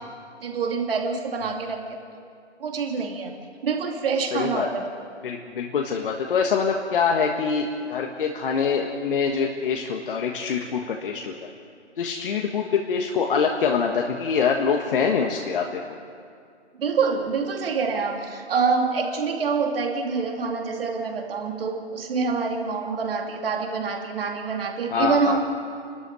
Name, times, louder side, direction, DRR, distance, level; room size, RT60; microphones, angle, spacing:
voice 1, 0.4-2.0 2.6-3.3 3.6-4.9 16.8-25.4, right 5 dB, 55° right, 3 dB, 2.7 m, -26 dB
voice 2, 4.2-4.7 5.2-11.3 12.0-15.8 24.9-25.4, left 6 dB, 50° left, 1 dB, 1.5 m, -24 dB
29.0 x 13.0 x 7.8 m, 2.3 s
figure-of-eight pair, 145°, 35 cm